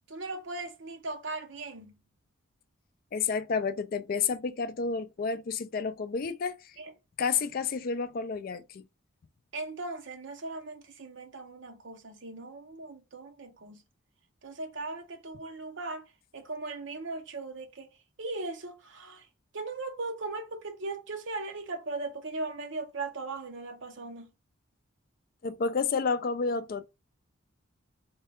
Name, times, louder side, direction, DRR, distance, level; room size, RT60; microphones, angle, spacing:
voice 1, 0.1-1.9 6.8-6.9 9.5-13.8 14.4-16.1 16.3-17.9 18.2-19.3 19.5-24.3, right 3 dB, 60° right, 0.8 m, -38 dB
voice 2, 3.1-6.7 7.2-8.9 25.4-26.9, left 5 dB, 45° left, 0.3 m, -30 dB
3.3 x 2.3 x 4.3 m
head